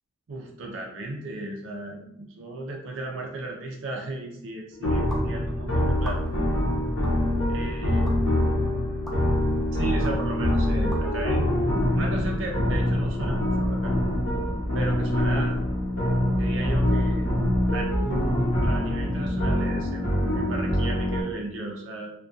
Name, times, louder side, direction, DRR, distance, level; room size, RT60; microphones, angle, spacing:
voice 1, 0.3-6.2 7.5-8.2 9.7-11.6 11.9-13.9 14.7-15.6 16.4-17.3 17.7-22.1, right 2 dB, 80° right, 0 dB, 0.4 m, -35 dB
sound 1, 4.8-21.2, left 1 dB, 80° left, 0.7 m, -24 dB
sound 2, 5.1-5.3 6.0-6.5 7.0-7.2 8.1-8.2 9.1-9.2 10.0-10.1 10.9-11.0, equal, ahead, 0.4 m, -39 dB
2.3 x 2.2 x 2.6 m, 0.77 s
head